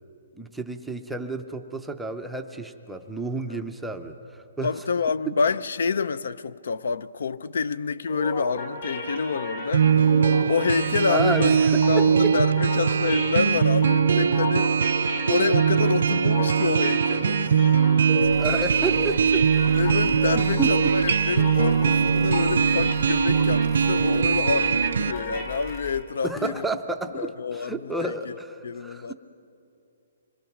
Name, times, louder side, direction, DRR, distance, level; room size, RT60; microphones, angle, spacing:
voice 1, 0.4-4.7 11.1-12.3 18.4-19.8 20.3-20.7 26.2-29.1, right 3 dB, ahead, 0.5 m, -31 dB
voice 2, 4.6-11.6 11.9-14.9 15.3-17.6 18.2-18.3 19.7-26.6 27.1-28.3 28.6-29.1, left 5 dB, 65° left, 0.5 m, -28 dB
sound 1, 8.1-25.9, left 1 dB, 40° left, 5.5 m, -33 dB
sound 2, 9.7-25.1, right 7 dB, 60° right, 0.5 m, -21 dB
sound 3, 18.2-26.0, left 6 dB, 20° left, 0.9 m, -42 dB
26.0 x 21.5 x 5.9 m
hypercardioid pair, 175°, 0 cm